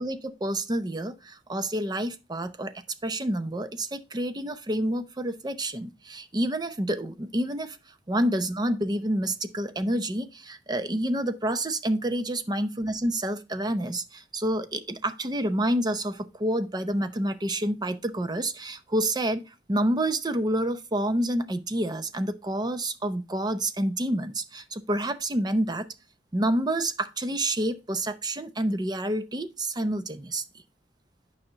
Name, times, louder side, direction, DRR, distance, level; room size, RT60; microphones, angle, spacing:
voice 1, 0.0-2.7 3.0-7.8 8.1-19.4 19.7-25.9 26.3-30.4, right 1 dB, 25° right, 0.7 m, -28 dB
9.2 x 5.6 x 2.9 m
head